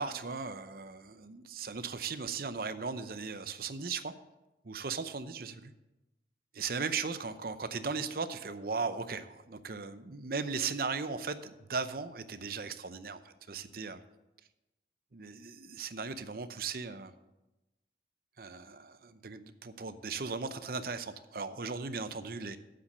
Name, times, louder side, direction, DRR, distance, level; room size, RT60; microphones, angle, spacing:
voice 1, 0.0-4.1 4.6-5.7 6.5-14.0 15.1-17.1 18.4-22.6, right 4 dB, 55° right, 11 dB, 0.7 m, -37 dB
8.5 x 7.8 x 6.6 m, 1.0 s
head